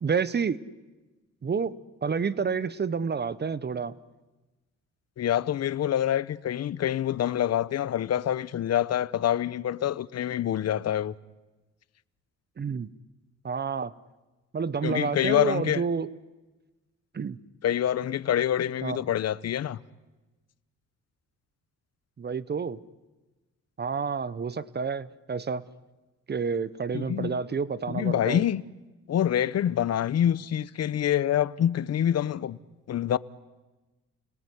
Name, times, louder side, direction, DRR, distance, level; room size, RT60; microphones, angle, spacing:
voice 1, 0.0-0.6 1.4-1.7 2.0-3.9 12.6-12.9 13.4-13.9 14.5-16.1 17.1-17.4 18.8-19.0 22.2-22.8 23.8-25.6 26.3-28.5, right 5 dB, 35° right, 1.0 m, -29 dB
voice 2, 5.2-11.1 14.8-15.8 17.6-19.8 26.9-27.4 27.9-28.6 29.1-32.6 32.9-33.2, left 10 dB, 55° left, 0.9 m, -26 dB
30.0 x 20.5 x 9.6 m
cardioid pair, 90°, 30 cm